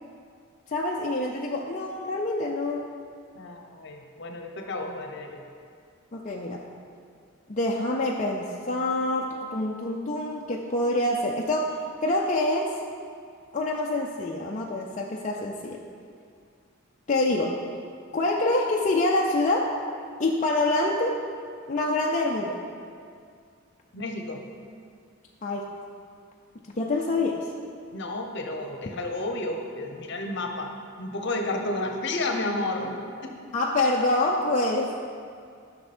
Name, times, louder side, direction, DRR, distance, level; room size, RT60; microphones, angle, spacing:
voice 1, 0.7-2.9 6.1-6.6 7.5-11.7 12.0-12.8 13.5-15.8 17.1-17.6 18.1-19.7 20.2-21.2 21.7-22.6 25.4-25.7 26.7-27.5 33.5-34.9, left 2 dB, 35° left, -2 dB, 0.6 m, -26 dB
voice 2, 3.3-5.4 23.9-24.4 27.9-30.7 31.0-32.9 33.2-33.4, left 2 dB, 60° left, 3 dB, 1.0 m, -31 dB
12.0 x 6.0 x 4.3 m, 2.3 s
head